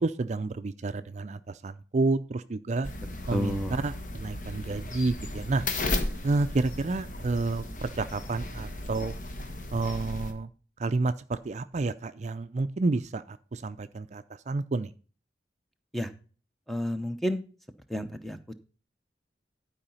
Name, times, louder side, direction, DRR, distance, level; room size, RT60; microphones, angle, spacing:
voice 1, 0.0-2.9 3.3-3.6 3.8-5.6 6.2-9.1 9.7-10.5 10.8-14.9, right 3 dB, 40° right, 11 dB, 0.4 m, -30 dB
sound 1, 2.8-10.3, left 1 dB, 45° left, 1.4 m, -35 dB
voice 2, 3.3-3.9 15.9-16.1 16.7-17.4 17.9-18.5, equal, ahead, 8 dB, 0.8 m, -31 dB
12.0 x 4.9 x 5.5 m, 0.38 s
head